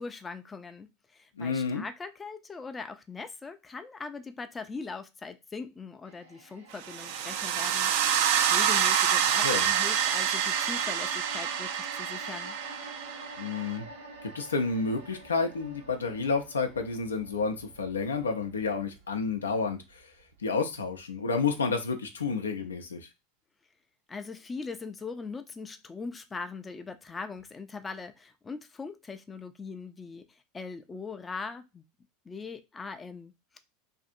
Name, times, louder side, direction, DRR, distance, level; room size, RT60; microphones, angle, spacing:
voice 1, 0.0-12.6 24.1-31.8 32.3-33.6, left 4 dB, 20° left, 8 dB, 0.4 m, -41 dB
voice 2, 1.4-1.8 9.4-9.6 13.4-13.9 14.3-20.1 20.4-23.1, left 4 dB, 85° left, 5 dB, 0.5 m, -30 dB
sound 1, 6.0-20.4 20.7-20.9, right 2 dB, 80° right, 0.8 m, -47 dB
sound 2, 6.8-13.7, right 9 dB, 60° right, 0.3 m, -27 dB
2.6 x 2.5 x 2.5 m, 0.24 s
hypercardioid pair, 85°, 0 cm